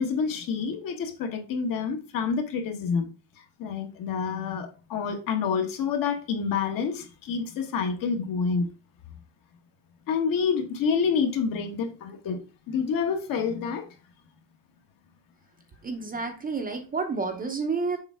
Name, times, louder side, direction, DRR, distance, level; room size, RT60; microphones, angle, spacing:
voice 1, 0.0-3.1 3.6-8.7 10.1-13.8, left 6 dB, 50° left, 1.3 m, -28 dB
voice 2, 15.8-18.0, right 4 dB, 20° right, 0.8 m, -30 dB
7.1 x 4.7 x 3.5 m
cardioid pair, 155°, 44 cm